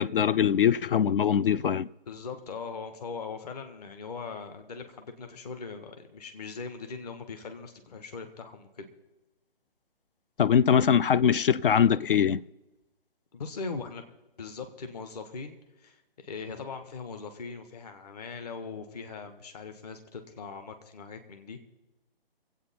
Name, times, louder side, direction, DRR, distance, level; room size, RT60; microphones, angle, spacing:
voice 1, 0.0-1.9 10.4-12.4, left 8 dB, 60° left, 0.4 m, -22 dB
voice 2, 2.0-8.9 13.3-14.0 14.4-21.6, left 4 dB, 40° left, 1.6 m, -40 dB
24.5 x 8.5 x 4.4 m
figure-of-eight pair, 150°, 31 cm